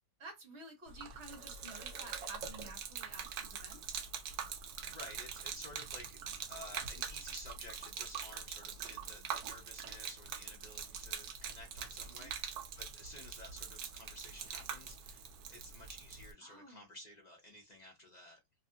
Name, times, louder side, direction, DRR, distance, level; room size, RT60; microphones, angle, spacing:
voice 1, 0.2-4.0 8.0-8.1 12.1-12.3 16.4-16.8, right 2 dB, 50° right, 1.2 m, -52 dB
Gurgling / Liquid, 0.9-16.3, right 7 dB, 75° right, 1.1 m, -44 dB
voice 2, 4.8-6.2 6.5-18.4, left 1 dB, 65° left, 0.4 m, -53 dB
2.9 x 2.3 x 2.6 m
omnidirectional pair, 1.7 m